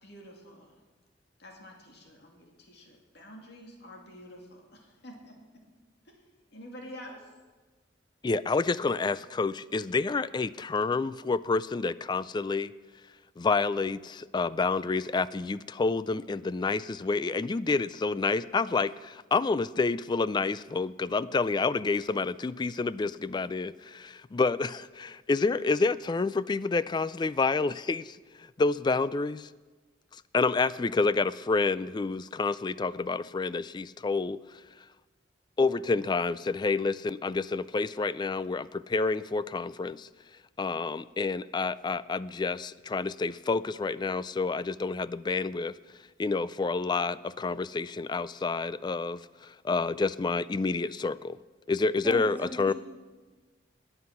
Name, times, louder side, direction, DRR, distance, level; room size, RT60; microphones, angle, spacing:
voice 1, 0.0-0.7 1.4-5.4 6.0-6.2 6.5-7.3, equal, 65° left, 1 dB, 2.4 m, -48 dB
voice 2, 8.2-12.7 13.4-29.5 30.3-34.4 35.6-40.1 40.6-45.7 46.2-51.4 51.7-52.7, left 4 dB, 25° left, 17 dB, 0.3 m, -29 dB
voice 3, 52.0-52.7, left 1 dB, 10° right, 1 dB, 1.4 m, -38 dB
20.5 x 7.9 x 5.8 m, 1.3 s
head